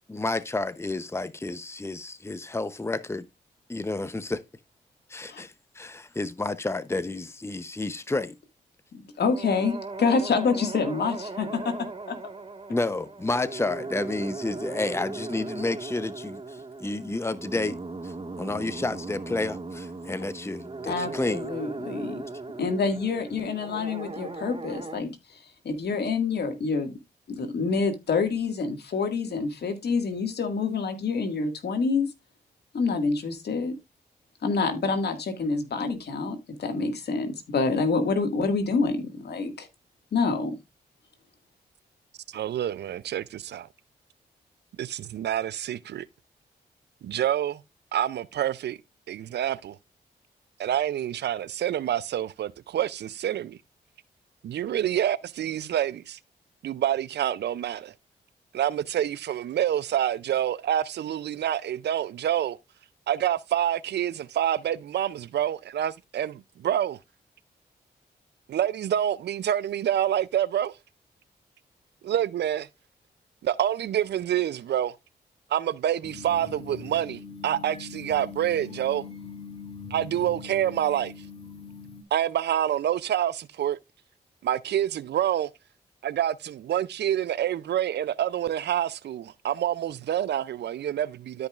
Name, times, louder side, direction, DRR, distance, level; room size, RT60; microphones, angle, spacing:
voice 1, 0.1-3.3 3.7-4.4 5.1-8.4 12.7-17.8 18.0-21.5, left 2 dB, 15° left, 0.8 m, -30 dB
voice 2, 9.2-12.2 20.9-22.2 22.6-25.4 25.6-26.9 27.4-32.1 32.7-33.7 34.4-39.7 40.1-40.5, left 4 dB, 65° left, 2.0 m, -27 dB
sound 1, 9.2-25.0, right 3 dB, 30° right, 1.7 m, -38 dB
voice 3, 42.3-43.7 44.8-46.1 47.0-47.6 47.9-48.8 49.1-49.8 50.6-53.6 54.4-56.2 56.6-57.9 58.5-62.6 63.1-67.0 68.5-70.8 72.0-72.7 73.4-75.0 75.5-79.0 79.9-81.1 82.1-83.8 84.4-85.5 86.0-91.5, right 11 dB, 70° right, 0.5 m, -27 dB
sound 2, 76.0-82.0, left 5 dB, 35° left, 2.2 m, -42 dB
13.0 x 5.3 x 2.4 m
supercardioid pair, 45°, 18 cm